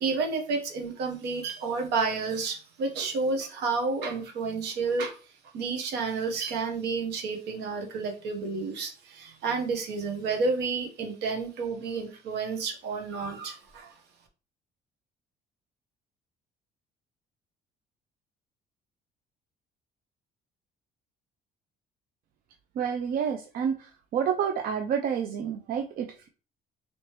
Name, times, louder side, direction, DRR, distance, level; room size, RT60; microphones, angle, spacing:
voice 1, 0.0-5.2 5.5-13.9, right 4 dB, 80° right, 4 dB, 1.0 m, -30 dB
voice 2, 22.8-23.8 24.1-26.3, right 7 dB, 60° right, 5 dB, 0.5 m, -29 dB
3.2 x 3.0 x 2.9 m, 0.35 s
cardioid pair, 110°, 17 cm